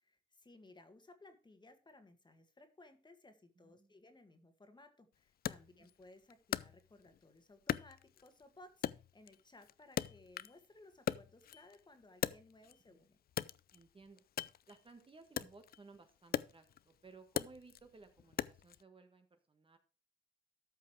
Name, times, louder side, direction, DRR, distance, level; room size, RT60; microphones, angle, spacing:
voice 1, 0.3-8.9 9.1-13.2, left 2 dB, 20° left, 8 dB, 1.9 m, -60 dB
voice 2, 3.6-3.9 5.7-5.9 12.9-13.0 13.7-14.2 14.7-19.8, right 3 dB, 25° right, 7 dB, 1.5 m, -59 dB
Wood, 5.5-7.2 7.7-8.4 8.8-10.7 10.9-12.9 13.3-18.8, left 10 dB, 50° left, 0.5 m, -41 dB
13.0 x 5.7 x 4.8 m, 0.34 s
cardioid pair, 90°, 20 cm